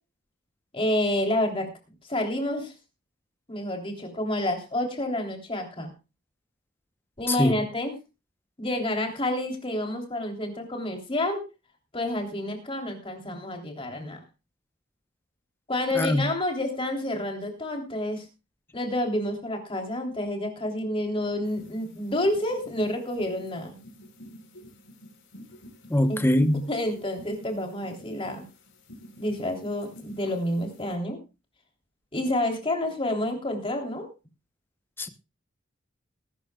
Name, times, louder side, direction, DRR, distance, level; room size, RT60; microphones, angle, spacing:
voice 1, 0.7-1.7 2.1-2.7 3.5-5.9 7.2-7.9 8.6-11.4 11.9-14.2 15.7-18.2 18.7-23.8 26.1-26.3 26.7-28.5 29.2-31.2 32.1-34.1, left 1 dB, 25° left, 3.3 m, -29 dB
voice 2, 16.0-16.3 25.9-26.6 35.0-35.1, left 1 dB, 10° left, 0.9 m, -22 dB
sound 1, 21.4-30.9, equal, 75° left, 5.4 m, -49 dB
20.0 x 12.5 x 2.4 m
head